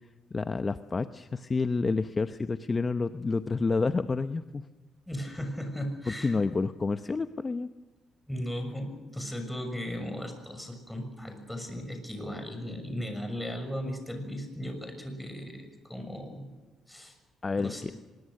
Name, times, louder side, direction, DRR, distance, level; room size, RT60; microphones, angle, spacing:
voice 1, 0.3-4.6 6.2-7.7 17.4-17.9, left 4 dB, 30° left, 11 dB, 0.8 m, -29 dB
voice 2, 5.1-6.4 8.3-16.5 16.9-17.1 17.6-17.9, equal, 5° left, 5 dB, 6.5 m, -37 dB
24.0 x 21.5 x 6.5 m, 1.2 s
cardioid pair, 90°, 0 cm